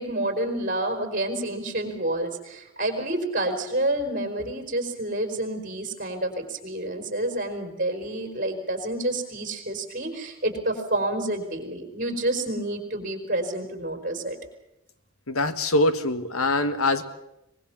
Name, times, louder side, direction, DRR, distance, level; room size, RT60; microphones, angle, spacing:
voice 1, 0.0-14.4, right 1 dB, 40° right, 5 dB, 4.4 m, -29 dB
voice 2, 15.3-17.0, left 2 dB, 80° left, 11 dB, 1.6 m, -23 dB
23.5 x 21.0 x 7.1 m, 0.90 s
head